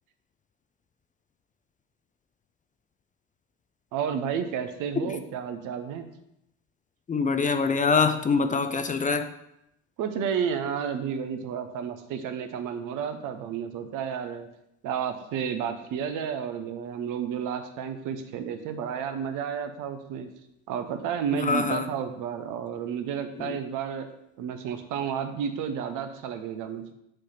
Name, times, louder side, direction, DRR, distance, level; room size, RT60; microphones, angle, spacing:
voice 1, 3.9-6.1 10.0-14.5 14.8-20.3 20.7-24.1 24.4-26.9, right 7 dB, 65° right, 8 dB, 0.8 m, -31 dB
voice 2, 7.1-9.3 21.4-21.9 23.4-23.6, left 5 dB, 25° left, 9 dB, 0.5 m, -24 dB
6.3 x 3.2 x 5.8 m, 0.80 s
supercardioid pair, 70°, 34 cm